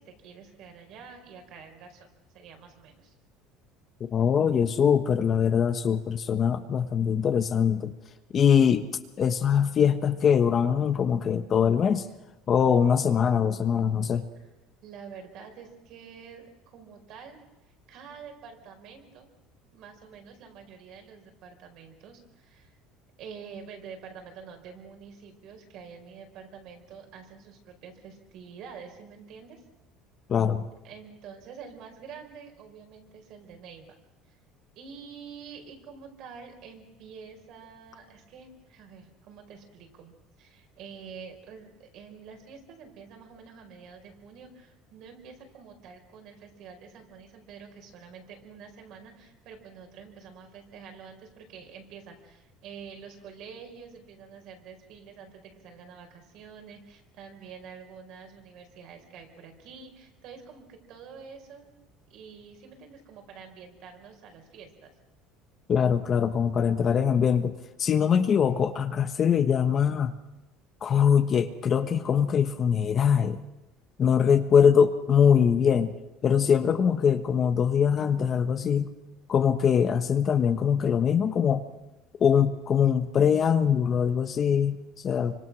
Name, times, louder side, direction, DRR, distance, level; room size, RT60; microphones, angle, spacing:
voice 1, 0.0-2.1 2.3-3.1 14.8-19.3 19.7-22.8 23.2-29.6 30.8-34.0 34.3-34.4 34.7-61.7 62.1-64.9, right 6 dB, 50° right, 4 dB, 4.9 m, -47 dB
voice 2, 4.1-7.9 8.3-8.9 9.2-12.1 12.5-14.3 30.3-30.7 65.7-67.5 67.8-70.1 70.8-73.4 74.0-75.9 76.2-78.9 79.3-81.6 82.2-85.3, left 7 dB, 30° left, 9 dB, 1.2 m, -23 dB
26.5 x 25.0 x 6.3 m, 0.98 s
cardioid pair, 160°, 0 cm